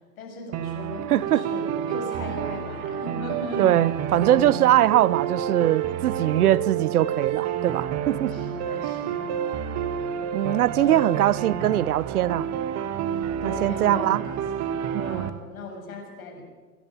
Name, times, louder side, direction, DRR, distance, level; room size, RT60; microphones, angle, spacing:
voice 1, 0.2-3.9 6.1-6.4 8.3-9.3 10.4-11.1 13.4-14.6 14.9-16.4, left 1 dB, 70° left, 7.8 m, -38 dB
sound 1, 0.5-15.3, right 9 dB, 35° right, 1.6 m, -29 dB
voice 2, 1.1-1.5 3.6-8.4 10.3-12.5 13.4-14.2 14.9-15.2, right 12 dB, 80° right, 0.8 m, -22 dB
26.5 x 11.0 x 9.2 m
hypercardioid pair, 105°, 44 cm